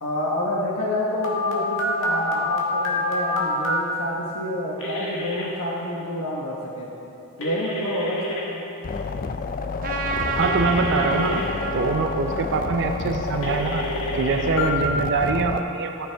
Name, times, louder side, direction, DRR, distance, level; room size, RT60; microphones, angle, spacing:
voice 1, 0.0-6.9 7.4-8.6, left 1 dB, 80° left, -4 dB, 1.1 m, -28 dB
Telephone, 1.2-3.8 4.8-5.4 7.4-8.4 10.4-11.4 13.4-14.7, left 1 dB, 60° left, 1.8 m, -28 dB
sound 1, 8.8-15.6, left 4 dB, 40° left, 0.4 m, -29 dB
Trumpet, 9.8-14.5, right 4 dB, 40° right, 0.8 m, -31 dB
voice 2, 10.3-11.4 11.7-13.8 14.1-16.1, right 4 dB, 55° right, 4 dB, 0.5 m, -24 dB
15.0 x 9.2 x 3.4 m, 3.0 s
head